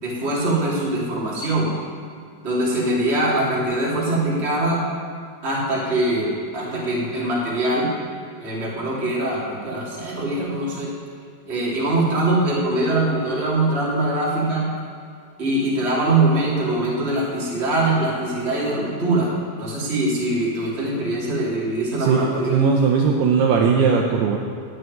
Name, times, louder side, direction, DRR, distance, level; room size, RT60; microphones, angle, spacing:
voice 1, 0.0-1.7 2.4-4.8 5.4-7.9 8.4-10.9 11.4-14.7 15.4-19.3 19.6-22.6, right 2 dB, 25° right, -5 dB, 1.5 m, -22 dB
voice 2, 22.0-24.4, right 5 dB, 90° right, 0 dB, 2.2 m, -18 dB
13.0 x 6.5 x 9.5 m, 2.1 s
omnidirectional pair, 5.7 m